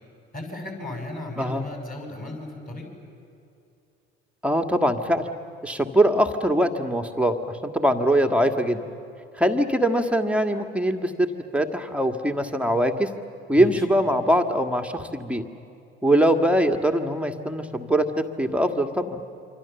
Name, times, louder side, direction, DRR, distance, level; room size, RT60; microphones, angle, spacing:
voice 1, 0.3-2.9 13.6-13.9, left 2 dB, 25° left, 2 dB, 6.8 m, -35 dB
voice 2, 4.4-5.3 5.6-8.8 9.4-11.3 11.5-13.1 13.5-15.4 16.0-19.2, right 1 dB, 5° right, 5 dB, 1.7 m, -22 dB
27.0 x 25.0 x 7.1 m, 2.7 s
figure-of-eight pair, 60°, 32 cm